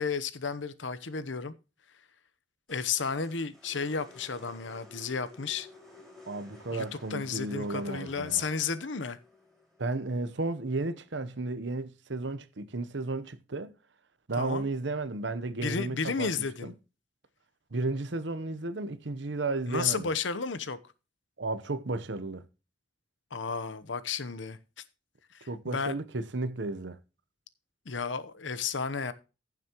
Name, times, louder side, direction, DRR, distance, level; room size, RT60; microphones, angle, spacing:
voice 1, 0.0-1.5 2.7-5.7 6.7-6.8 7.1-9.2 14.4-14.7 15.6-16.7 19.7-20.8 23.3-24.6 25.3-26.0 27.9-29.1, left 5 dB, 85° left, 0.9 m, -32 dB
sound 1, 2.7-11.0, left 2 dB, ahead, 5.2 m, -54 dB
voice 2, 6.3-8.4 9.8-13.7 14.3-16.3 16.6-16.7 17.7-20.1 21.4-22.5 25.5-27.0, right 2 dB, 75° right, 0.9 m, -33 dB
15.0 x 7.3 x 3.0 m
head